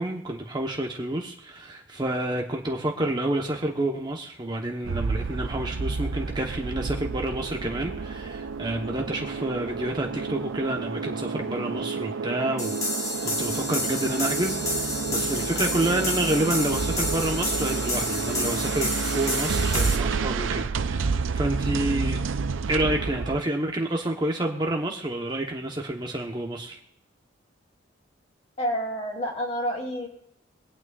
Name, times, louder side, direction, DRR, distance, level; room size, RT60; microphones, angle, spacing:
voice 1, 0.0-12.8 13.2-22.2 22.7-26.8, right 1 dB, 20° right, 2 dB, 1.0 m, -29 dB
sound 1, 4.8-23.4, right 4 dB, 80° right, 0.5 m, -30 dB
sound 2, 12.6-20.0, left 1 dB, 15° left, 1.4 m, -30 dB
voice 2, 28.6-30.1, equal, 35° left, -2 dB, 3.1 m, -29 dB
24.0 x 9.0 x 2.5 m, 0.78 s
head